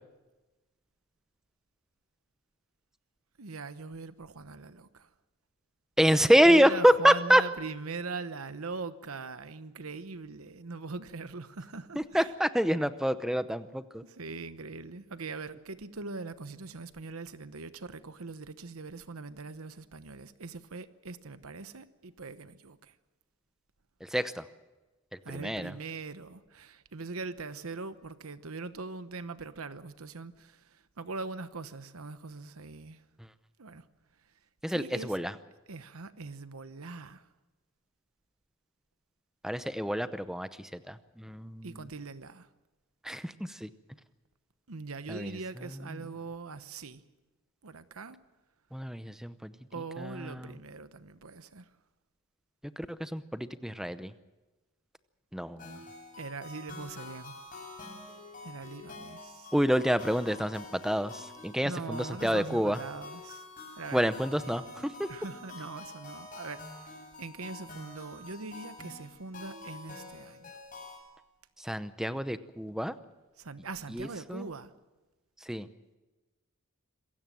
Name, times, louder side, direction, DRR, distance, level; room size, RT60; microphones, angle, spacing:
voice 1, 3.4-5.1 6.4-12.3 14.0-22.9 25.2-33.0 33.6-33.8 34.7-35.2 35.7-37.3 41.6-42.5 44.7-47.0 47.6-48.2 49.7-51.7 55.7-55.9 56.2-57.4 58.4-59.5 61.6-63.5 63.8-64.0 65.1-66.6 67.2-70.5 73.4-74.7, right 4 dB, 85° right, 1.0 m, -41 dB
voice 2, 6.0-7.4 12.0-14.0 24.0-24.4 25.3-25.7 34.6-35.3 39.4-41.8 43.0-43.7 45.1-45.3 48.7-49.5 50.0-50.5 52.8-54.1 55.3-55.7 59.5-62.8 63.9-65.1 71.6-72.9 73.9-74.5 75.5-75.7, equal, ahead, 0.7 m, -27 dB
sound 1, 55.6-71.0, left 2 dB, 40° left, 8.0 m, -47 dB
26.5 x 16.5 x 7.6 m
head